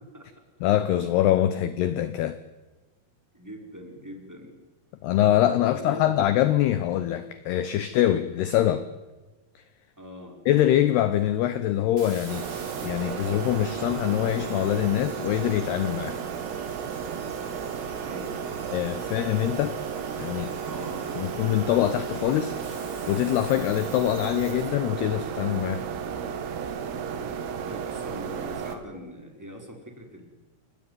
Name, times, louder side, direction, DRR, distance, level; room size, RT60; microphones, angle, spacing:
voice 1, 0.6-2.4 5.0-8.9 10.5-12.5 12.8-16.2 18.7-19.8 20.2-20.5 21.2-22.6 23.1-25.9, left 12 dB, 80° left, 2.3 m, -24 dB
voice 2, 3.3-4.5 5.6-6.2 10.0-10.4 18.0-19.2 20.6-21.3 27.5-30.2, equal, 5° right, 3.9 m, -42 dB
sound 1, 12.0-24.7, right 3 dB, 30° right, 4.8 m, -47 dB
sound 2, 12.3-28.8, right 7 dB, 85° right, 4.8 m, -33 dB
29.5 x 17.5 x 9.6 m
omnidirectional pair, 5.9 m